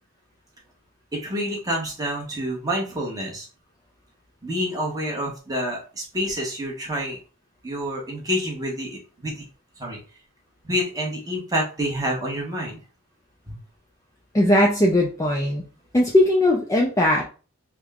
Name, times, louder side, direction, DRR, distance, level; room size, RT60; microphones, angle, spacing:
voice 1, 1.1-3.5 4.4-7.2 7.6-9.4 9.8-10.0 10.7-12.8 13.5-13.6, equal, 15° right, -2 dB, 1.0 m, -28 dB
voice 2, 14.3-15.6 15.9-17.2, left 1 dB, 15° left, -1 dB, 0.4 m, -19 dB
3.4 x 2.1 x 3.5 m, 0.36 s
head